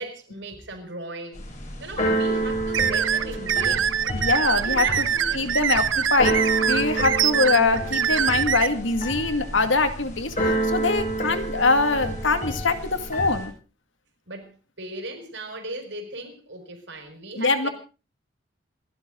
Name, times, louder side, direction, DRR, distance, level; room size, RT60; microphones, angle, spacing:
voice 1, 0.0-1.4 1.8-4.0 4.5-5.6 14.3-17.7, right 2 dB, 70° right, 5.0 m, -37 dB
Keyboard (musical), 1.3-13.5, right 1 dB, 40° left, 7.7 m, -29 dB
sound 1, 2.7-8.7, right 8 dB, 85° right, 0.8 m, -23 dB
voice 2, 4.1-5.1 5.3-13.5 17.4-17.7, left 3 dB, 80° left, 2.2 m, -23 dB
28.0 x 12.0 x 3.9 m
head